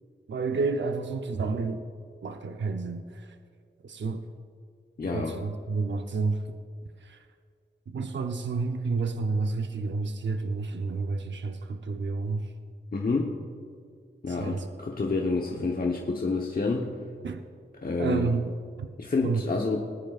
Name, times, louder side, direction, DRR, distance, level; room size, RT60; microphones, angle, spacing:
voice 1, 0.3-1.8 2.2-3.3 3.8-4.2 5.1-6.4 7.0-7.2 7.9-12.5 14.3-14.7 17.2-17.4 18.0-18.5 18.8-18.9 19.2-19.4, right 4 dB, 70° right, 6 dB, 0.7 m, -30 dB
voice 2, 5.0-5.4 12.9-13.4 14.2-16.9 17.8-18.3 19.0-19.9, left 3 dB, 50° left, -1 dB, 1.0 m, -28 dB
19.5 x 10.5 x 2.4 m, 2.2 s
wide cardioid pair, 80°, 20 cm